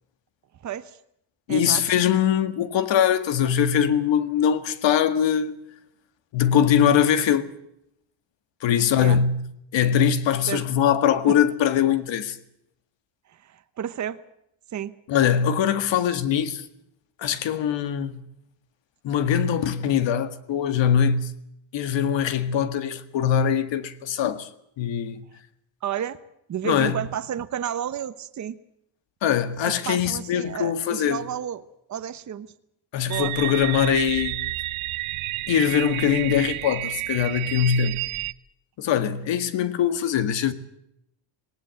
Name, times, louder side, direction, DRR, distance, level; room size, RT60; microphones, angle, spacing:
voice 1, 0.6-1.0 1.5-1.8 9.0-9.2 10.5-10.6 11.3-11.4 13.3-14.2 14.7-14.9 25.8-26.2 26.5-28.6 29.8-32.5 33.0-33.3, right 9 dB, 35° right, 1.1 m, -31 dB
voice 2, 1.5-5.6 6.3-7.5 8.6-9.5 9.7-12.4 15.1-16.6 17.2-18.2 19.0-21.3 21.7-24.5 24.8-25.3 26.6-27.0 29.2-31.2 32.9-34.5 35.5-38.0 38.8-40.5, left 8 dB, 60° left, 2.0 m, -22 dB
sound 1, 33.1-38.3, right 17 dB, 70° right, 0.9 m, -30 dB
19.5 x 19.0 x 7.8 m
cardioid pair, 150°, 50 cm